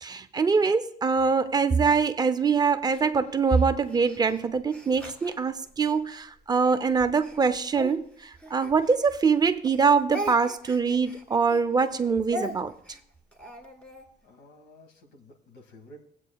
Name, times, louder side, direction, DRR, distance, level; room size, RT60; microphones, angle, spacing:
voice 1, 0.0-12.7, right 5 dB, 25° right, 10 dB, 0.5 m, -24 dB
Speech, 2.9-6.0 6.6-9.4 9.6-14.1, equal, 10° left, 1.9 m, -40 dB
voice 2, 14.2-16.0, equal, 80° left, 5 dB, 1.7 m, -52 dB
17.0 x 8.3 x 2.3 m, 0.66 s
cardioid pair, 110°, 17 cm